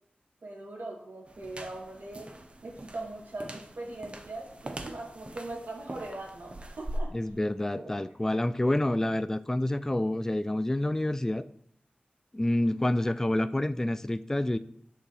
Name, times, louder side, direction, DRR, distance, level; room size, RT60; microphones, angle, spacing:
voice 1, 0.4-2.3 2.6-7.1 7.7-8.1, right 2 dB, 80° right, 2.8 m, -41 dB
sound 1, 1.3-7.0, right 1 dB, 35° right, 1.0 m, -42 dB
voice 2, 7.1-11.4 12.3-14.6, left 1 dB, 15° left, 0.3 m, -28 dB
11.5 x 6.7 x 3.3 m
wide cardioid pair, 85°, 3 cm